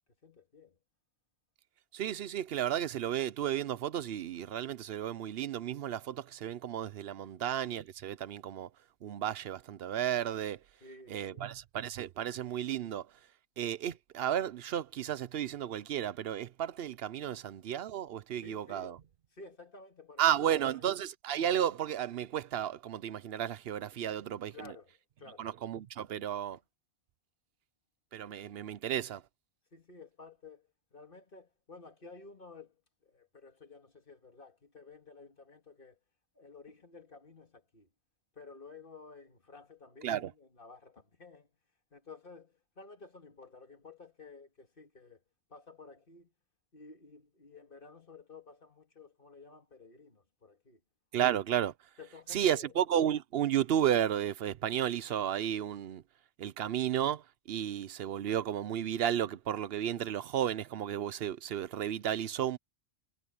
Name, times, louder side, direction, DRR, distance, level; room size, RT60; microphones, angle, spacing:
voice 1, 0.2-0.8 7.2-7.3 10.8-11.6 17.3-17.4 18.3-20.9 23.9-24.1 24.5-25.5 26.5-26.6 29.7-36.0 36.3-37.9 38.3-41.5 41.9-45.2 45.5-46.3 46.7-50.8 52.0-52.8, left 4 dB, 50° left, 2.3 m, -53 dB
voice 2, 1.9-8.7 9.0-10.6 11.1-13.1 13.6-18.9 20.2-24.7 25.4-26.6 28.1-29.2 40.0-40.3 51.1-51.7 52.3-56.0 56.4-57.2 57.5-62.6, right 10 dB, 60° right, 0.8 m, -33 dB
omnidirectional pair, 1.2 m